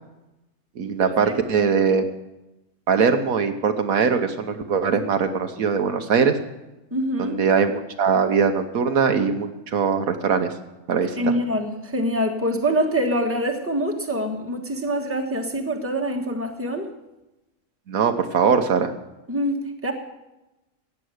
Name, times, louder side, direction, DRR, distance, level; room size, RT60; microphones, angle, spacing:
voice 1, 0.8-2.0 2.9-6.4 7.2-10.5 10.9-11.3 17.9-18.9, right 6 dB, 70° right, 7 dB, 1.3 m, -21 dB
voice 2, 1.3-1.7 6.9-7.4 11.2-16.9 19.3-19.9, equal, 10° right, 3 dB, 1.4 m, -25 dB
15.0 x 9.6 x 6.4 m, 0.99 s
omnidirectional pair, 1.5 m